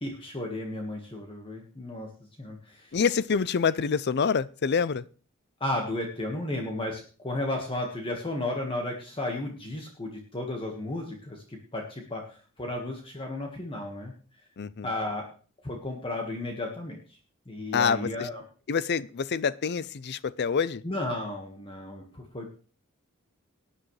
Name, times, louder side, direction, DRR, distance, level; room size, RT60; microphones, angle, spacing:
voice 1, 0.0-2.1 2.4-3.0 5.6-14.1 14.8-15.3 15.6-17.2 17.5-18.4 20.8-22.5, left 1 dB, 25° left, 1.6 m, -34 dB
voice 2, 2.9-5.0 14.6-14.9 17.7-18.3 18.7-20.8, left 6 dB, 50° left, 0.5 m, -26 dB
18.5 x 10.0 x 3.3 m
head